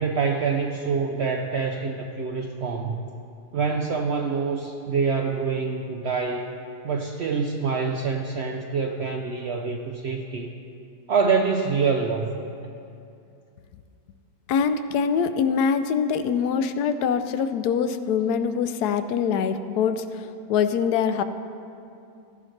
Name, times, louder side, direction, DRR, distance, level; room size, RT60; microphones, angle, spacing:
voice 1, 0.0-3.0 3.5-6.5 6.8-10.5 11.1-12.4, right 5 dB, 70° right, 3 dB, 0.6 m, -26 dB
voice 2, 14.5-21.2, left 6 dB, 85° left, 10 dB, 1.1 m, -24 dB
14.0 x 10.5 x 3.2 m, 2.6 s
omnidirectional pair, 1.7 m